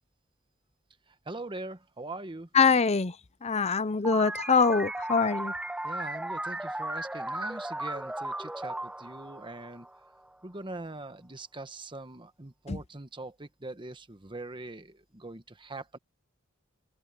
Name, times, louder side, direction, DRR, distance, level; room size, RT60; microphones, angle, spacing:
voice 1, 1.3-2.5 5.8-9.9 10.4-16.0, right 2 dB, 25° right, 1.3 m, -42 dB
voice 2, 2.5-5.5 12.7-12.8, left 5 dB, 30° left, 0.7 m, -24 dB
sound 1, 4.0-10.3, right 1 dB, 5° right, 0.4 m, -36 dB
open air
head